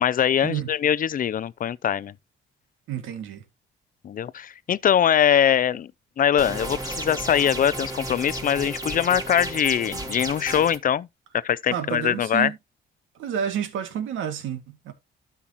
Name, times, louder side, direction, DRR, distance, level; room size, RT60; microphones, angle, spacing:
voice 1, 0.0-2.1 4.0-5.9 6.2-11.1 11.3-12.5, left 9 dB, 45° left, 0.5 m, -22 dB
voice 2, 2.9-3.4 11.7-12.6 13.2-14.9, right 8 dB, 85° right, 2.2 m, -30 dB
sound 1, 6.4-10.8, right 1 dB, 15° right, 3.0 m, -33 dB
12.5 x 5.8 x 3.0 m
cardioid pair, 90°, 20 cm